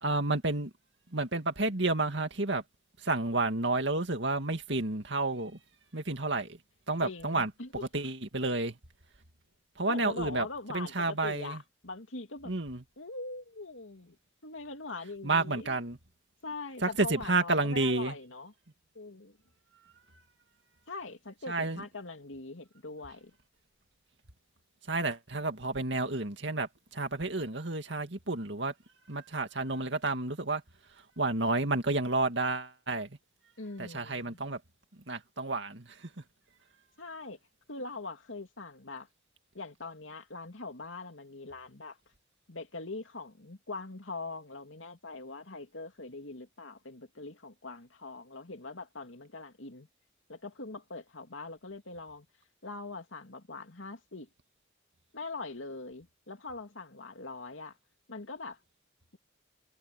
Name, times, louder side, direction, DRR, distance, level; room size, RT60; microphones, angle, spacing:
voice 1, 0.0-0.7 1.1-2.6 3.0-5.6 5.9-6.6 6.9-7.5 7.9-8.8 9.8-11.6 12.5-12.8 15.2-16.0 16.8-18.2 21.5-21.8 24.9-28.7 29.1-30.6 31.2-33.2 33.8-34.6 35.1-36.1, right 2 dB, 60° right, 2.4 m, -30 dB
voice 2, 7.0-7.8 9.9-12.5 13.0-14.2 14.4-15.8 16.4-18.5 18.9-19.4 20.9-23.3 33.6-34.4 37.0-37.4 37.7-39.1 39.5-42.0 42.5-49.9 50.3-52.3 52.6-54.3 55.1-57.8 58.1-58.6, left 3 dB, 80° left, 2.7 m, -42 dB
head